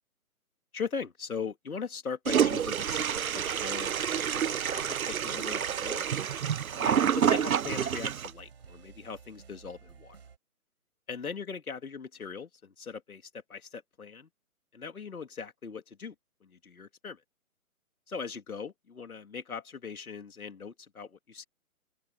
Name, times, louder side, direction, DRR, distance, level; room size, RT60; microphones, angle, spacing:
voice 1, 0.7-4.8 5.1-6.1 6.7-10.2 11.1-14.3 14.7-16.1 16.4-17.2 18.1-21.4, left 5 dB, 75° left, 3.1 m, -40 dB
Toilet flush, 2.3-8.3, right 8 dB, 75° right, 0.8 m, -28 dB
sound 1, 4.1-10.4, right 6 dB, 45° right, 4.4 m, -54 dB
open air
hypercardioid pair, 175°, 43 cm